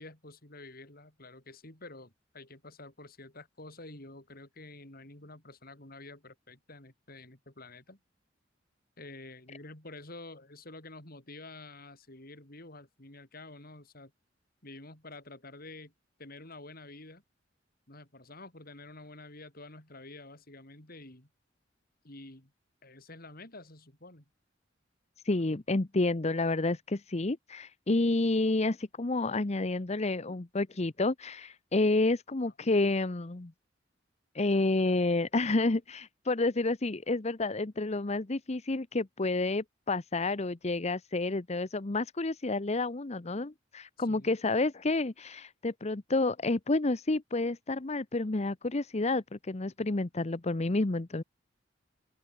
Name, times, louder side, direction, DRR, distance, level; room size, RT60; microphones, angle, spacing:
voice 1, 0.0-8.0 9.0-14.1 14.6-15.9 16.2-17.2 17.9-21.3 22.0-22.5 22.8-24.3 30.3-30.4 32.4-32.5 44.0-44.4, left 2 dB, 50° left, 5.5 m, -49 dB
voice 2, 25.2-33.5 34.3-51.2, left 2 dB, 35° left, 0.9 m, -29 dB
open air
head